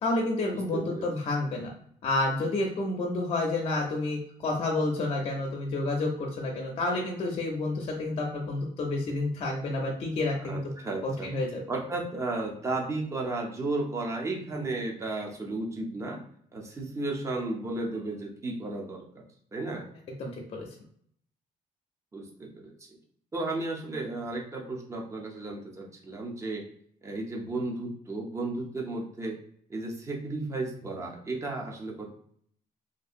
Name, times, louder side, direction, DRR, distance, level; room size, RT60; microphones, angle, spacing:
voice 1, 0.0-1.7 2.0-10.6 11.0-11.6 20.2-20.7, left 2 dB, 40° left, 0 dB, 0.5 m, -29 dB
voice 2, 0.7-1.1 10.4-11.3 11.7-16.2 16.5-19.3 19.5-19.9 22.1-22.7 23.3-26.6 27.0-29.4 29.7-32.1, right 2 dB, 20° right, 0 dB, 0.6 m, -34 dB
2.7 x 2.6 x 2.5 m, 0.63 s
cardioid pair, 145°, 15 cm